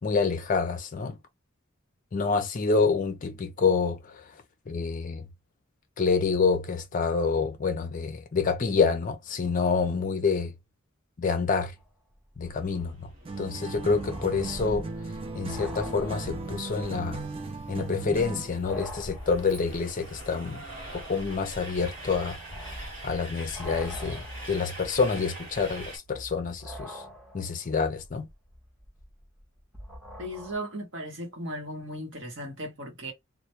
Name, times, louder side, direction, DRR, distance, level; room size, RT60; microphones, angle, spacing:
voice 1, 0.0-1.2 2.1-4.2 4.7-5.3 6.0-10.5 11.2-11.7 12.4-13.1 13.4-14.9 15.3-17.2 17.7-20.6 20.9-22.4 23.0-27.0 27.3-28.3, left 4 dB, 40° left, 0.4 m, -27 dB
sound 1, 11.8-11.9 12.1-17.0 17.3-17.4 17.9-30.6, equal, ahead, 0.7 m, -45 dB
Train, 12.5-26.0, right 1 dB, 45° right, 1.2 m, -44 dB
sound 2, 13.2-18.6, right 3 dB, 25° right, 0.4 m, -37 dB
voice 2, 30.2-33.1, equal, 60° right, 0.9 m, -36 dB
2.1 x 2.1 x 2.8 m
head